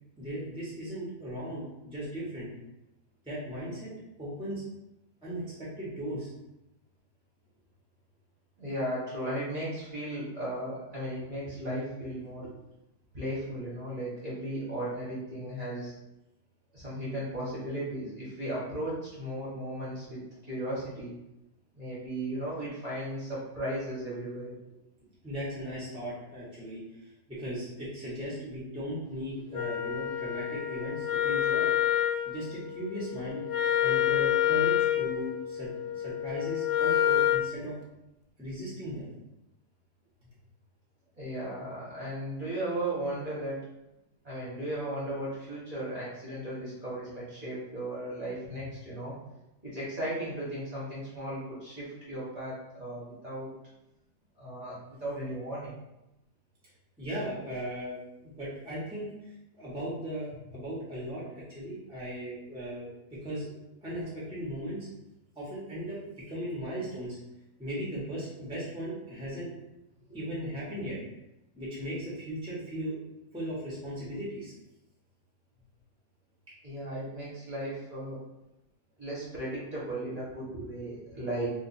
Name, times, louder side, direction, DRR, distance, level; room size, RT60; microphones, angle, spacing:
voice 1, 0.2-2.5 3.2-3.9 4.2-4.6 5.2-6.3 25.2-31.7 32.2-33.4 33.8-37.7 38.4-39.1 57.0-62.9 63.2-63.5 63.8-64.8 65.4-67.2 67.6-69.5 70.1-71.0 71.5-72.9 73.3-74.5, equal, 5° right, -8 dB, 0.8 m, -37 dB
voice 2, 8.6-12.5 13.1-15.9 16.7-21.1 21.7-24.5 41.2-43.6 44.2-49.1 49.6-53.5 54.4-55.7 70.1-70.2 76.6-78.2 79.0-81.5, right 1 dB, 25° right, -9 dB, 1.1 m, -36 dB
Wind instrument woodwind instrument, 29.5-37.5, left 11 dB, 70° left, 1.1 m, -28 dB
2.7 x 2.6 x 4.2 m, 0.92 s
omnidirectional pair, 1.9 m